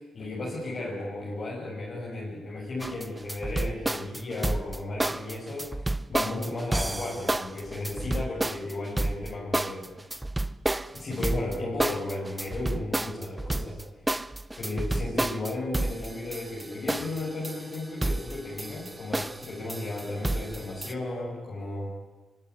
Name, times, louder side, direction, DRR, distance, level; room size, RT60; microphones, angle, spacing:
voice 1, 0.0-5.7 6.1-9.9 10.9-13.8 14.6-21.9, left 2 dB, 50° left, -5 dB, 7.5 m, -34 dB
sound 1, 2.8-20.9, right 1 dB, 15° right, 0.8 m, -31 dB
24.5 x 23.5 x 9.8 m, 1.3 s
cardioid pair, 70°, 0 cm